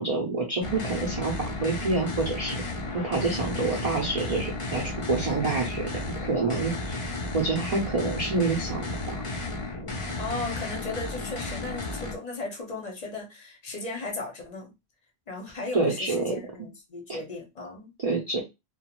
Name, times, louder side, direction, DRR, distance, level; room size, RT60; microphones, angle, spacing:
voice 1, 0.0-2.6 2.9-7.0 7.3-8.8 15.7-16.3 17.1-17.2 18.0-18.4, right 3 dB, 45° right, 0.5 m, -27 dB
sound 1, 0.6-12.1, left 2 dB, 55° left, 0.3 m, -33 dB
voice 2, 10.2-14.7 15.3-17.9, left 3 dB, 40° left, 0.8 m, -36 dB
2.4 x 2.2 x 2.9 m
omnidirectional pair, 1.2 m